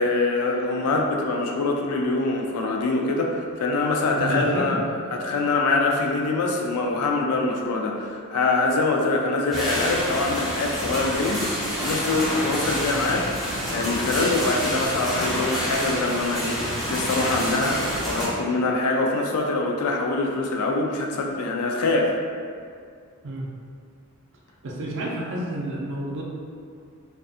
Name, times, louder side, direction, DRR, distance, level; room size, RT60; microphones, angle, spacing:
voice 1, 0.0-4.8 5.1-13.3 13.7-22.1, left 3 dB, 80° left, 1 dB, 0.4 m, -24 dB
voice 2, 4.2-4.8 23.2-23.5 24.6-26.2, right 1 dB, 55° right, -3 dB, 0.4 m, -29 dB
sound 1, 9.5-18.3, equal, ahead, 0.6 m, -28 dB
2.6 x 2.3 x 2.4 m, 2.2 s
head